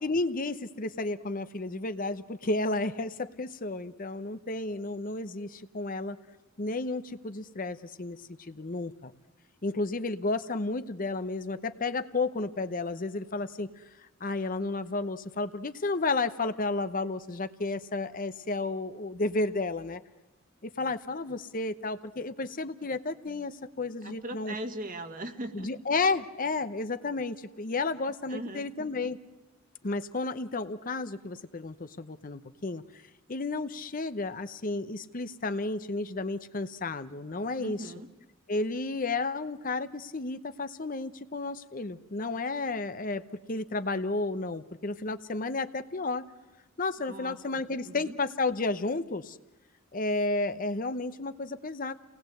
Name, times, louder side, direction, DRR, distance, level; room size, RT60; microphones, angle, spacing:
voice 1, 0.0-6.2 6.6-9.1 9.6-13.8 14.2-20.0 20.6-24.5 25.5-29.2 29.8-32.8 33.3-37.9 38.5-43.2 43.5-46.3 46.8-49.4 49.9-51.9, left 3 dB, 40° left, 11 dB, 0.9 m, -32 dB
voice 2, 24.0-25.8 28.3-28.7 37.6-38.1 47.0-48.1, right 1 dB, 45° right, 6 dB, 1.9 m, -40 dB
29.0 x 19.5 x 7.9 m, 1.1 s
head